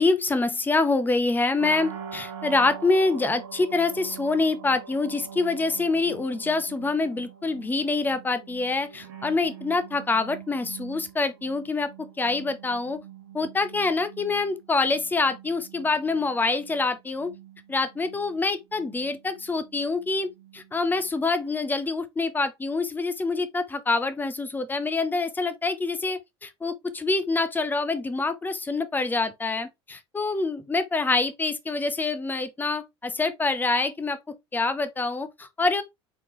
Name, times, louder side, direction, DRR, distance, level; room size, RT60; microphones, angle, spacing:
voice 1, 0.0-13.0 13.3-17.3 17.7-35.8, left 3 dB, 10° left, 0.9 m, -26 dB
sound 1, 1.6-21.4, right 8 dB, 60° right, 0.9 m, -44 dB
4.3 x 3.4 x 3.1 m
figure-of-eight pair, 70°, 15 cm